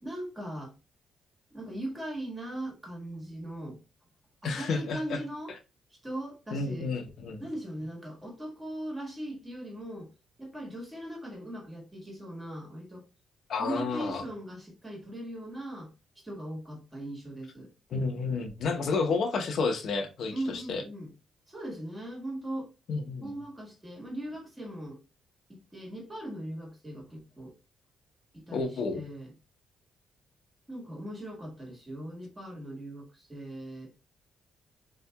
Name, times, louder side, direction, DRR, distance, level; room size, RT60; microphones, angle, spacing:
voice 1, 0.0-0.7 1.5-3.8 4.4-5.5 6.0-6.9 7.4-10.1 10.4-13.0 13.6-17.7 20.3-21.1 21.5-22.7 23.2-25.0 25.5-27.5 28.3-29.3 30.7-33.9, right 1 dB, 15° right, 1.5 m, -39 dB
voice 2, 4.4-5.2 6.5-7.4 13.5-14.2 17.9-20.8 22.9-23.4 28.5-29.0, left 4 dB, 65° left, 0.9 m, -31 dB
4.1 x 2.8 x 2.3 m
cardioid pair, 90°, 0 cm